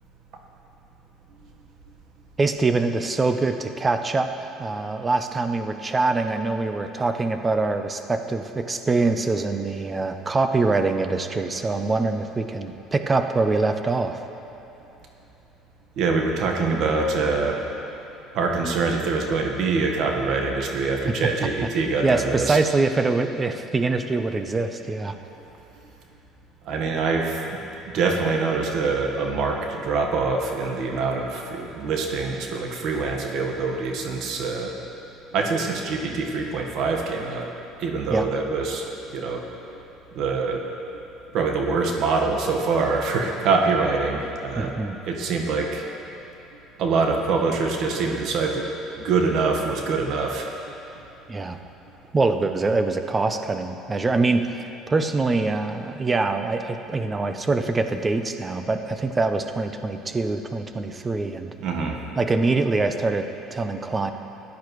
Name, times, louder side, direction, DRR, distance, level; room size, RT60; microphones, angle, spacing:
voice 1, 2.4-14.2 22.0-25.2 38.1-38.3 44.6-45.0 51.3-51.6 52.1-61.5 62.2-64.1, right 3 dB, 20° right, 7 dB, 0.7 m, -24 dB
voice 2, 16.0-17.7 18.3-22.6 26.6-27.6 27.8-34.8 35.3-37.5 37.8-38.9 39.1-39.8 40.1-40.6 41.3-44.7 45.0-45.9 46.8-48.7 49.0-50.5 61.6-62.0, right 4 dB, 60° right, 2 dB, 1.3 m, -24 dB
15.0 x 10.5 x 3.1 m, 3.0 s
supercardioid pair, 110°, 0 cm